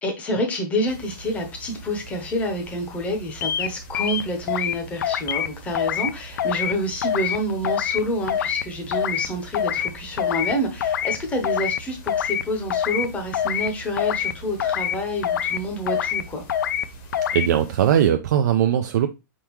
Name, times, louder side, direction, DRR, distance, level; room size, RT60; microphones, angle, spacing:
voice 1, 0.0-16.4, equal, 10° left, 0.8 m, -28 dB
sound 1, 0.9-18.1, right 3 dB, 35° left, 1.0 m, -43 dB
sound 2, 3.4-3.7 3.9-4.7 5.0-5.5 5.7-6.1 6.4-6.7 7.0-7.4 7.6-8.0 8.3-8.6 8.9-9.3 9.5-9.9 10.2-10.5 10.8-11.2 11.4-11.8 12.1-12.4 12.7-13.1 13.3-13.7 14.0-14.3 14.6-15.0 15.2-15.6 15.9-16.2 16.5-16.8 17.1-17.5, left 10 dB, 65° left, 0.4 m, -24 dB
voice 2, 17.3-19.1, right 10 dB, 60° right, 0.4 m, -19 dB
4.5 x 3.6 x 3.0 m
hypercardioid pair, 165°, 11 cm